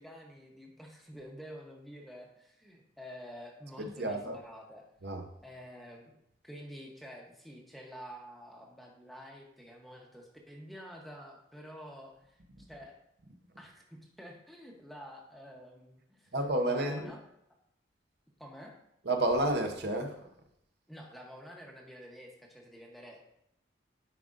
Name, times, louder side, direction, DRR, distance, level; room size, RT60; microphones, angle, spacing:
voice 1, 0.0-4.9 5.4-6.1 6.4-12.4 12.7-13.0 13.6-16.3 16.7-17.2 18.4-18.7 20.9-23.2, equal, ahead, 0 dB, 0.9 m, -49 dB
voice 2, 3.8-4.4 5.0-5.2 12.6-12.7 16.3-17.1 19.0-20.2, right 1 dB, 60° right, 3 dB, 0.8 m, -30 dB
10.5 x 5.1 x 2.5 m, 0.76 s
head